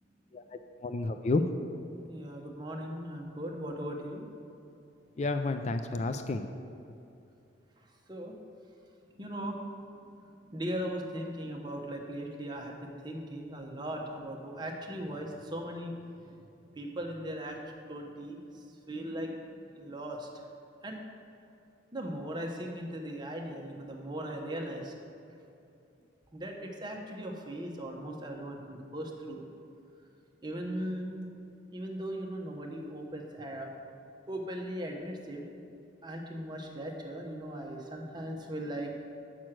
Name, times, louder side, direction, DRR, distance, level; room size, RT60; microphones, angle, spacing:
voice 1, 0.8-1.5 5.2-6.5, left 3 dB, 35° left, 8 dB, 0.3 m, -30 dB
voice 2, 2.1-4.3 8.1-8.4 9.2-9.6 10.0-15.9 16.3-16.4 16.8-17.6 17.9-20.3 20.8-21.0 21.9-24.9 26.3-29.4 30.4-31.3 31.7-33.7 34.3-35.4 36.0-39.0, right 1 dB, 25° right, 1 dB, 0.9 m, -38 dB
7.6 x 6.3 x 6.0 m, 2.7 s
head